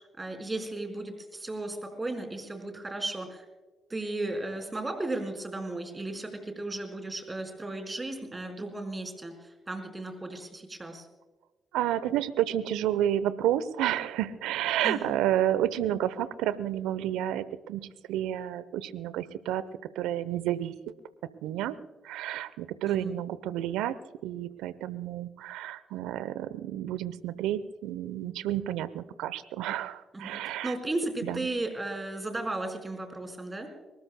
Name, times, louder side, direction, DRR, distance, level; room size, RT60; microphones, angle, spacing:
voice 1, 0.2-3.4 3.9-11.1 14.8-15.2 22.9-23.1 30.1-33.7, right 2 dB, 25° right, 5 dB, 4.6 m, -35 dB
voice 2, 11.7-19.6 19.9-20.9 21.4-21.8 22.0-24.0 24.2-30.8 31.2-31.5, right 12 dB, 75° right, 17 dB, 0.7 m, -30 dB
24.5 x 21.0 x 2.2 m, 1.2 s
hypercardioid pair, 40°, 0 cm